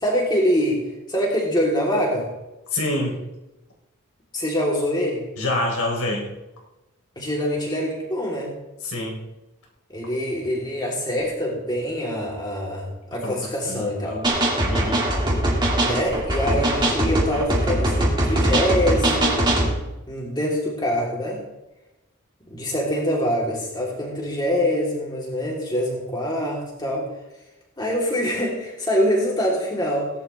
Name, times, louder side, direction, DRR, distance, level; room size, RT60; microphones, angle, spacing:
voice 1, 0.0-2.3 4.3-5.3 7.1-8.5 9.9-14.2 15.7-19.4 20.1-21.4 22.5-27.1 27.8-30.1, equal, 20° left, -3 dB, 3.3 m, -24 dB
voice 2, 2.7-3.2 5.4-6.3 8.8-9.2 13.2-13.4 13.7-14.3 14.7-15.0, left 1 dB, 80° left, -1 dB, 3.7 m, -26 dB
sound 1, 14.2-19.7, right 1 dB, 20° right, 2.2 m, -21 dB
18.0 x 11.0 x 3.4 m, 1.0 s
head